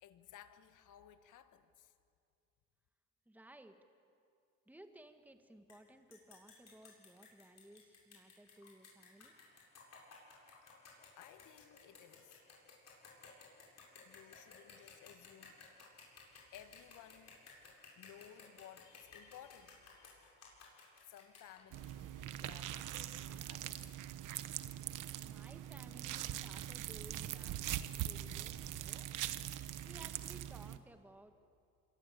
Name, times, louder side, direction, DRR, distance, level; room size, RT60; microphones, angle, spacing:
voice 1, 0.0-1.9 11.1-12.4 14.0-15.6 16.5-17.5 17.9-20.5 21.0-24.0, left 10 dB, 85° left, 10 dB, 1.6 m, -58 dB
voice 2, 3.3-3.8 4.7-9.4 25.2-29.1 29.8-31.3, right 1 dB, 5° right, 6 dB, 1.8 m, -58 dB
sound 1, 5.7-5.8 6.1-21.9, left 5 dB, 60° left, 8.0 m, -58 dB
sound 2, 21.7-30.8, right 12 dB, 90° right, 1.1 m, -42 dB
26.5 x 22.5 x 8.5 m, 2.4 s
cardioid pair, 90°, 30 cm